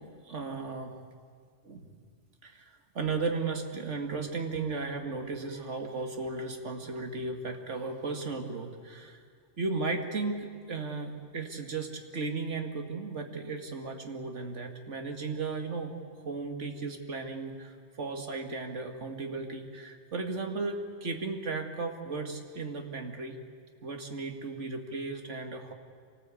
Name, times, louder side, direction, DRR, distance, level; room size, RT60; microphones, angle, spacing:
voice 1, 0.3-1.0 1.6-1.8 2.4-2.6 3.0-9.2 9.6-16.0 16.2-23.4 23.8-25.7, right 3 dB, 75° right, 4 dB, 2.2 m, -35 dB
24.5 x 18.5 x 8.4 m, 2.1 s
omnidirectional pair, 1.2 m